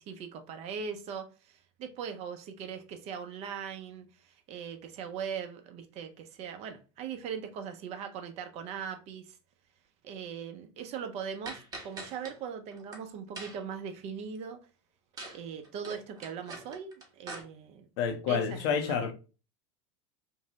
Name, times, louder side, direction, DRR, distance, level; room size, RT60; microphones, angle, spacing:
voice 1, 0.0-9.4 10.0-14.6 15.3-17.9 18.3-19.1, right 7 dB, 45° right, 0.5 m, -40 dB
sound 1, 11.5-12.3 12.7-13.0 13.4-13.7 15.2-15.4 15.6-17.4, right 2 dB, 25° right, 0.8 m, -43 dB
voice 2, 18.0-19.1, left 7 dB, 65° left, 0.6 m, -29 dB
2.6 x 2.0 x 2.7 m
hypercardioid pair, 95°, 15 cm